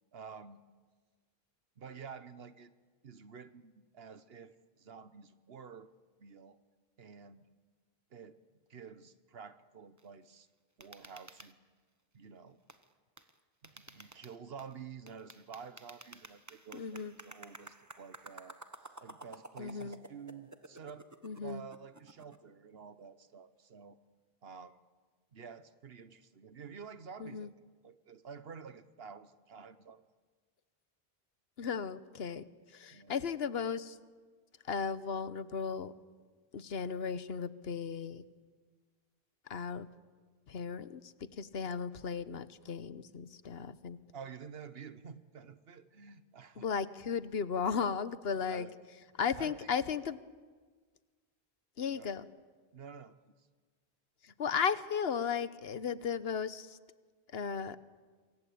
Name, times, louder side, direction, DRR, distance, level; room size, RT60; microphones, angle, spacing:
voice 1, 0.1-0.6 1.8-2.7 3.0-5.9 6.2-6.6 7.0-7.5 8.1-8.4 8.7-10.5 10.8-11.6 12.1-12.6 13.6-18.6 19.0-21.1 21.4-24.0 24.4-24.8 25.3-27.5 27.8-30.0 32.9-33.2 44.1-46.7 48.5-48.7 49.4-49.7 51.9-52.1 52.7-53.3, right 6 dB, 70° right, 13 dB, 1.3 m, -50 dB
sound 1, 10.0-10.1 10.8-11.5 12.7-12.9 13.2-13.3 13.6-14.7 15.1-22.4, right 2 dB, 15° right, 1.2 m, -53 dB
voice 2, 16.7-17.1 19.6-20.0 21.2-21.6 27.2-27.5 31.6-32.4 32.7-34.0 34.7-35.9 36.5-38.2 39.5-39.9 40.5-41.0 41.4-44.0 46.6-48.6 49.2-50.2 51.8-52.3 54.4-56.8 57.3-57.8, left 6 dB, 75° left, 15 dB, 1.2 m, -35 dB
27.0 x 23.0 x 8.5 m, 1.5 s
omnidirectional pair, 1.0 m